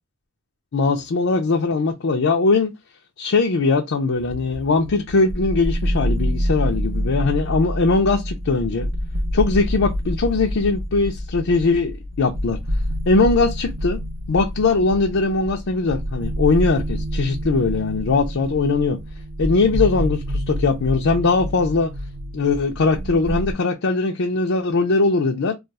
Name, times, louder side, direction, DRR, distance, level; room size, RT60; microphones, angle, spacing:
voice 1, 0.7-2.7 3.2-8.9 9.3-12.6 13.1-14.0 14.3-19.0 19.4-21.9 22.3-25.5, left 3 dB, 70° left, 0.5 m, -20 dB
sound 1, 4.1-23.5, equal, 65° right, 0.6 m, -27 dB
2.4 x 2.3 x 3.9 m
head